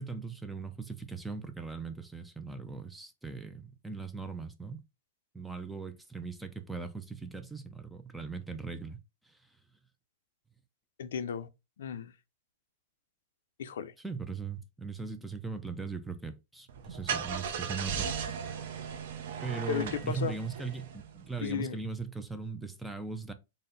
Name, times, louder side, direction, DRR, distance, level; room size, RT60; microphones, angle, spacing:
voice 1, 0.0-4.8 5.3-9.0 9.2-9.4 14.0-18.5 19.4-23.3, right 4 dB, 5° right, 0.3 m, -39 dB
voice 2, 11.0-11.5 11.8-12.1 13.6-13.9 19.7-20.4 21.4-21.8, left 8 dB, 75° left, 0.4 m, -34 dB
Car / Engine starting, 16.7-21.4, right 7 dB, 50° right, 0.6 m, -37 dB
4.0 x 2.1 x 3.8 m
supercardioid pair, 170°, 0 cm